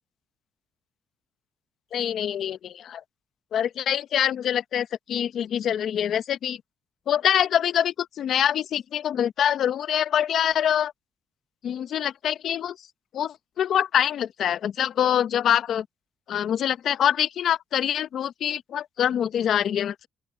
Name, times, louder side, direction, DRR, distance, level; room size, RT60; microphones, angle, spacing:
voice 1, 1.9-3.0 3.5-6.6 7.1-10.9 11.6-12.8 13.1-15.9 16.3-20.1, left 9 dB, 65° left, 0.8 m, -25 dB
open air
cardioid pair, 80°, 0 cm